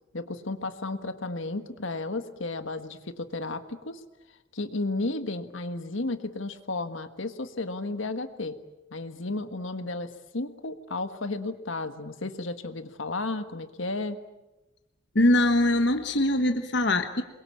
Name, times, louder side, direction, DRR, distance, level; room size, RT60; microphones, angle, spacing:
voice 1, 0.1-4.0 4.5-8.6 8.9-14.2, left 2 dB, 75° left, 9 dB, 1.6 m, -33 dB
voice 2, 15.1-17.2, left 1 dB, 55° left, 7 dB, 1.4 m, -22 dB
28.5 x 22.0 x 8.6 m, 1.0 s
head